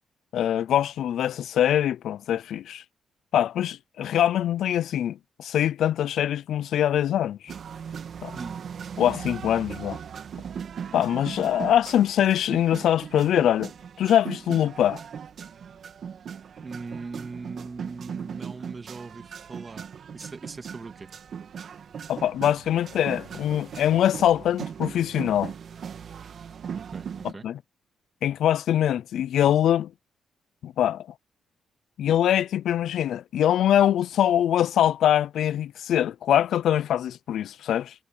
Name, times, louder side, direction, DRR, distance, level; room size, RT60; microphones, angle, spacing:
voice 1, 0.3-2.8 3.3-7.5 8.2-8.4 9.0-10.0 10.9-13.7 14.0-15.0 22.1-25.5 27.2-27.6 28.2-29.9 30.6-31.1 32.0-37.9, left 11 dB, 80° left, 0.5 m, -23 dB
sound 1, 7.5-27.3, right 7 dB, 60° right, 2.3 m, -38 dB
voice 2, 16.6-21.1 26.7-27.5, right 4 dB, 30° right, 2.6 m, -40 dB
cardioid pair, 95°, 0 cm